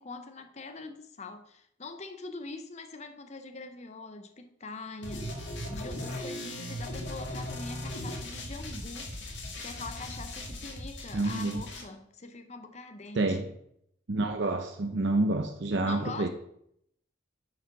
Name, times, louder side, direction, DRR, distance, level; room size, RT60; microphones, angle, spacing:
voice 1, 0.0-5.4 5.7-13.4 15.8-16.3, left 3 dB, 35° left, 0.6 m, -43 dB
sound 1, 5.0-11.8, left 1 dB, 60° left, 1.9 m, -38 dB
voice 2, 11.1-11.6 13.1-13.5 14.1-16.3, right 2 dB, 60° right, 0.6 m, -28 dB
9.4 x 5.0 x 5.8 m
head